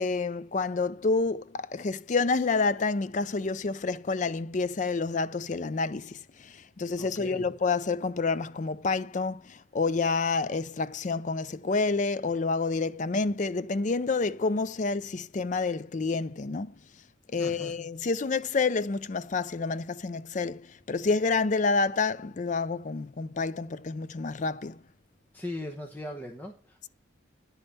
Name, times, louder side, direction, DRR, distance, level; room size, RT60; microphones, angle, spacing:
voice 1, 0.0-16.7 17.3-24.8, left 4 dB, 40° left, 0.4 m, -28 dB
voice 2, 7.0-7.5 17.4-17.7 25.3-26.9, left 1 dB, 10° left, 0.9 m, -39 dB
10.5 x 5.4 x 6.9 m
head